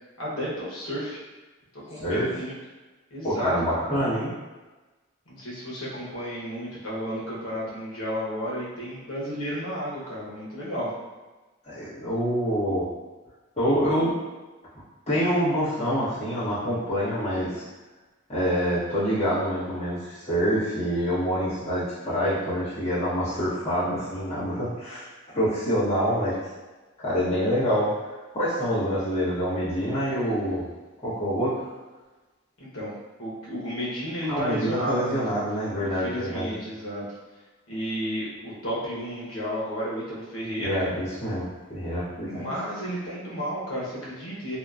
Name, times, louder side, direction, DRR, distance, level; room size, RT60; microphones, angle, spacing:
voice 1, 0.2-1.2 1.7-2.6 3.1-3.8 5.3-10.9 32.6-32.9 33.2-35.2 35.8-37.1 37.7-40.9 42.3-44.6, equal, 80° left, -6 dB, 0.9 m, -32 dB
voice 2, 2.0-2.3 3.2-4.3 11.7-12.9 13.6-14.2 15.1-17.6 18.3-25.1 25.3-26.4 27.0-27.9 28.3-30.6 31.0-31.5 34.3-36.5 40.6-42.5, equal, 30° left, -12 dB, 1.0 m, -26 dB
2.8 x 2.2 x 2.4 m, 1.2 s
head